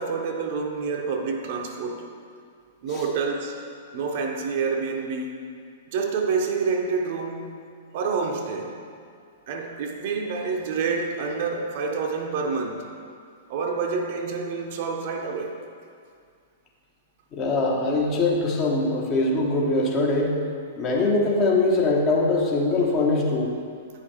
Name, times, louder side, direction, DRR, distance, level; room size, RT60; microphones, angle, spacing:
voice 1, 0.0-2.1 2.8-3.6 3.9-5.4 5.9-7.6 7.9-8.8 9.5-12.8 13.5-15.6, right 4 dB, 50° right, 3 dB, 0.7 m, -28 dB
voice 2, 17.3-20.4 20.8-23.5, left 2 dB, 30° left, -2 dB, 1.3 m, -22 dB
9.4 x 5.6 x 3.4 m, 2.2 s
figure-of-eight pair, 105°, 0 cm